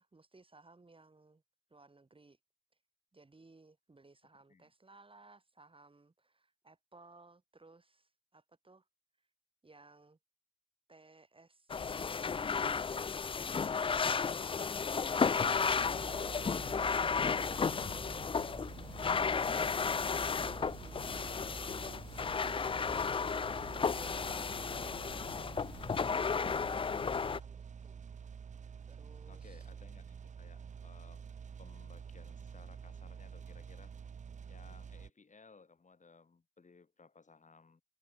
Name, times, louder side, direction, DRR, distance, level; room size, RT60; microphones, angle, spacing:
voice 1, 0.0-1.4 1.7-2.4 3.1-8.8 9.6-10.2 10.9-12.9 13.4-14.1 14.5-16.7 17.4-18.2 19.3-22.4 23.6-28.0 28.9-29.7, right 3 dB, 35° right, 2.8 m, -60 dB
sound 1, 11.7-27.4, left 5 dB, 35° left, 0.4 m, -33 dB
sound 2, 15.5-35.1, right 7 dB, 55° right, 0.5 m, -48 dB
voice 2, 29.3-31.3 31.6-34.2 34.5-37.8, left 4 dB, 55° left, 6.6 m, -60 dB
cardioid pair, 50°, 15 cm